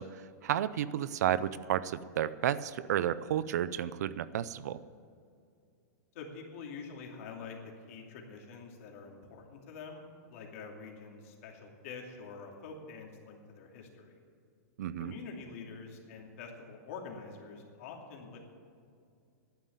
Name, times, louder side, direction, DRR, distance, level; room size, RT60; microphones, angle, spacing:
voice 1, 0.0-4.8 14.8-15.1, right 10 dB, 70° right, 17 dB, 0.5 m, -32 dB
voice 2, 6.1-10.0 10.3-14.2 15.0-18.4, left 5 dB, 50° left, 1 dB, 2.7 m, -46 dB
11.5 x 9.2 x 9.3 m, 2.4 s
supercardioid pair, 165°, 9 cm